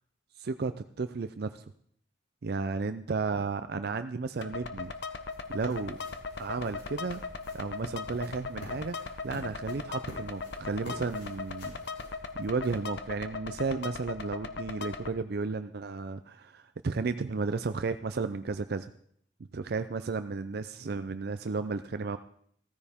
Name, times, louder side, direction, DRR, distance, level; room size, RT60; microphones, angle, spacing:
voice 1, 0.4-0.7 1.0-1.6 2.4-4.9 5.5-6.0 6.4-7.2 7.5-11.7 12.3-18.9 19.5-22.2, right 4 dB, 55° right, 11 dB, 0.5 m, -33 dB
sound 1, 4.4-15.1, left 4 dB, 60° left, 0.9 m, -39 dB
sound 2, 4.5-13.0, equal, 90° left, 7.1 m, -50 dB
15.5 x 14.0 x 3.6 m, 0.65 s
head